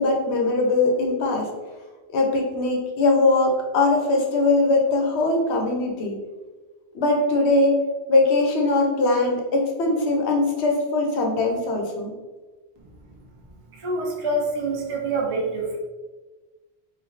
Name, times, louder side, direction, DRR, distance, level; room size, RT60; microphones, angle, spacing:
voice 1, 0.0-1.5 2.1-6.2 6.9-7.8 8.1-12.1, left 2 dB, 80° left, 1 dB, 1.0 m, -21 dB
voice 2, 13.7-15.8, right 2 dB, 40° right, -1 dB, 0.5 m, -26 dB
3.3 x 2.3 x 3.8 m, 1.2 s
omnidirectional pair, 1.1 m